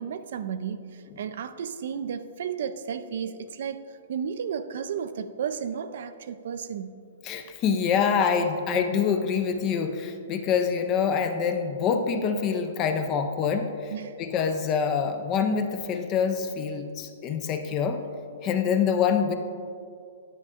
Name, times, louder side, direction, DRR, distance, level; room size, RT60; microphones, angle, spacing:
voice 1, 0.0-3.8 4.1-6.9 13.9-14.2, right 7 dB, 55° right, 12 dB, 0.4 m, -33 dB
voice 2, 7.2-13.9 14.2-18.0 18.4-19.3, left 6 dB, 20° left, 7 dB, 0.4 m, -25 dB
9.9 x 9.4 x 2.5 m, 2.4 s
hypercardioid pair, 170°, 0 cm